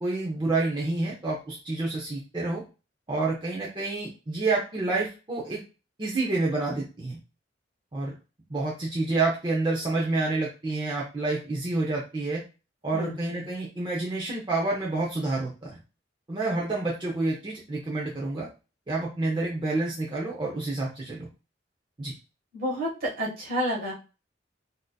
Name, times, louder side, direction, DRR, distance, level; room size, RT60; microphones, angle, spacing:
voice 1, 0.0-2.6 3.1-5.6 6.0-7.2 7.9-8.1 8.5-12.4 12.8-15.8 16.3-18.5 18.9-21.3 22.0-22.1, right 2 dB, 25° right, -4 dB, 0.6 m, -28 dB
voice 2, 12.9-13.5 22.5-23.9, equal, 55° right, -3 dB, 1.4 m, -30 dB
3.7 x 2.6 x 2.2 m, 0.31 s
head